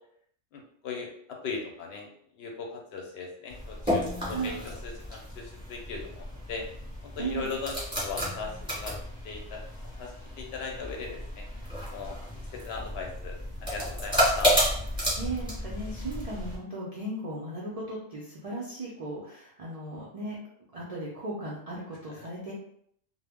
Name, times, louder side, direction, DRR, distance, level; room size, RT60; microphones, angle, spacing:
voice 1, 0.5-2.1 2.4-6.6 7.0-7.7 8.0-8.9 9.2-9.6 10.0-11.4 11.9-12.2 12.5-14.5, left 4 dB, 65° left, 0 dB, 0.7 m, -38 dB
sound 1, 3.5-16.6, equal, 5° right, 0.9 m, -32 dB
voice 2, 4.2-4.6 7.2-7.5 15.0-20.4 20.7-22.5, right 2 dB, 65° right, -5 dB, 0.3 m, -36 dB
2.0 x 2.0 x 3.4 m, 0.67 s
omnidirectional pair, 1.3 m